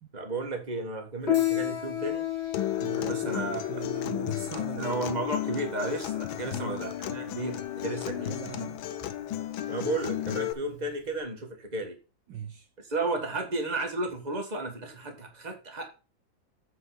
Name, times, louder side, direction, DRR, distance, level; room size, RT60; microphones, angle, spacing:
voice 1, 0.1-2.3 3.0-3.8 4.8-8.3 9.7-12.0 12.8-15.9, right 2 dB, 20° right, 1.8 m, -33 dB
Piano, 1.2-11.2, left 13 dB, 40° left, 1.2 m, -33 dB
sound 1, 1.3-5.5 6.2-6.6 7.6-7.8, left 3 dB, 70° left, 2.6 m, -53 dB
Acoustic guitar, 2.5-10.5, left 12 dB, 90° left, 1.5 m, -34 dB
voice 2, 2.8-5.2 6.4-6.8 8.1-8.8 12.3-12.7, right 9 dB, 70° right, 1.3 m, -41 dB
8.3 x 4.8 x 5.7 m
omnidirectional pair, 2.1 m